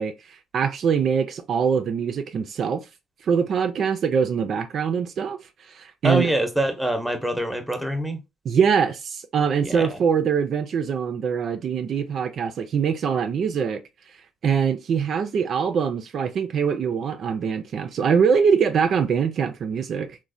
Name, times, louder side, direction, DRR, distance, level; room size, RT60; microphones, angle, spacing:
voice 1, 0.0-2.9 3.2-6.3 8.4-13.8 14.4-20.2, right 6 dB, 60° right, 0.3 m, -23 dB
voice 2, 6.0-8.2 9.6-10.0, right 1 dB, ahead, 0.7 m, -24 dB
3.0 x 2.1 x 2.5 m
cardioid pair, 85°, 0 cm